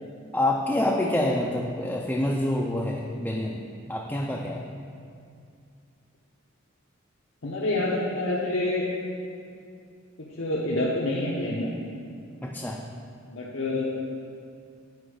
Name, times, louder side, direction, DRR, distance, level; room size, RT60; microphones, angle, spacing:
voice 1, 0.3-4.6 12.4-12.8, left 1 dB, 10° left, -2 dB, 0.4 m, -27 dB
voice 2, 7.4-8.9 10.2-11.7 13.3-13.8, left 2 dB, 70° left, -5 dB, 0.8 m, -27 dB
8.2 x 5.1 x 4.9 m, 2.3 s
head